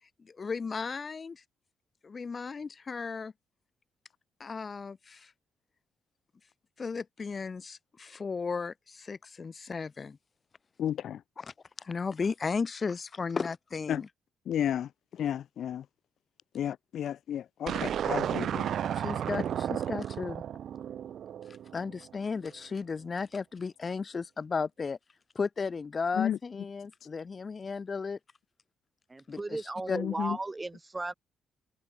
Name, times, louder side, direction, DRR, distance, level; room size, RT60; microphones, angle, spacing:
voice 1, 0.2-1.4 2.0-3.3 4.4-5.3 6.8-10.2 11.4-14.1 17.7-17.8 18.9-20.4 21.7-25.0 25.3-28.2 29.3-30.0, left 5 dB, 35° left, 7.8 m, -35 dB
voice 2, 14.5-14.8 15.2-15.8 16.6-17.7 18.1-18.5 26.2-26.3, left 10 dB, 65° left, 0.6 m, -31 dB
sound 1, 17.7-22.1, right 9 dB, 65° right, 2.3 m, -33 dB
voice 3, 29.1-31.1, right 2 dB, 20° right, 3.0 m, -36 dB
cardioid pair, 90°, 0 cm